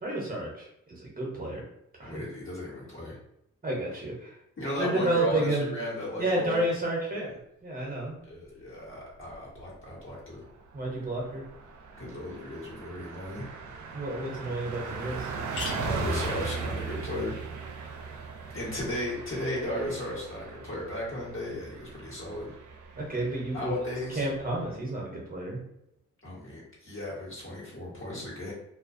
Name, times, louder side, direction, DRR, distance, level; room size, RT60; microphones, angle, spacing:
voice 1, 0.0-1.6 2.0-2.2 3.6-4.3 4.8-5.7 6.2-8.2 10.7-11.4 13.9-15.3 23.0-23.8 24.1-25.6, right 1 dB, 30° right, -2 dB, 0.8 m, -31 dB
voice 2, 2.0-3.2 4.6-6.7 8.2-10.4 12.0-13.5 15.5-17.3 18.5-22.5 23.5-24.3 26.2-28.5, left 1 dB, 45° left, -6 dB, 1.3 m, -35 dB
Car passing by, 9.1-9.7 10.1-10.2 10.5-24.8, right 4 dB, 70° right, 0.5 m, -38 dB
sound 1, 13.9-14.0 14.5-14.6 14.8-14.9 15.2-19.0, left 3 dB, 75° left, 0.7 m, -45 dB
2.4 x 2.2 x 2.5 m, 0.79 s
cardioid pair, 60°, 30 cm